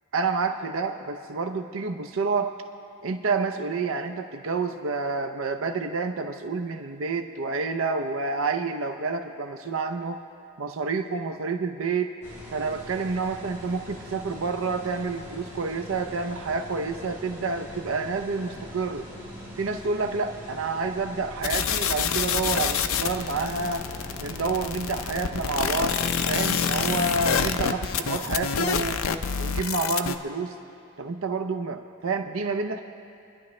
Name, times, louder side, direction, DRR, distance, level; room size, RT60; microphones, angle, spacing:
voice 1, 0.1-2.6 3.0-10.2 10.6-12.1 12.5-19.1 19.6-23.8 24.2-26.0 26.3-29.0 29.4-30.6 31.0-32.8, right 4 dB, 70° right, 7 dB, 0.6 m, -29 dB
sound 1, 12.2-29.2, equal, 10° right, 3.7 m, -42 dB
sound 2, 21.4-30.2, left 7 dB, 75° left, 0.6 m, -27 dB
27.5 x 11.0 x 3.2 m, 2.6 s
head